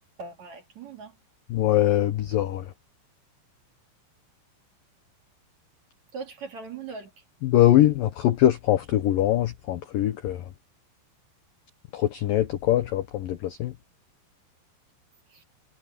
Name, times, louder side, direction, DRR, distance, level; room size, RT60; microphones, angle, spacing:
voice 1, 0.2-1.2 6.1-7.1 15.3-15.4, right 4 dB, 45° right, 2.9 m, -39 dB
voice 2, 1.5-2.6 7.4-10.4 11.9-13.7, left 13 dB, 80° left, 2.0 m, -22 dB
omnidirectional pair, 5.4 m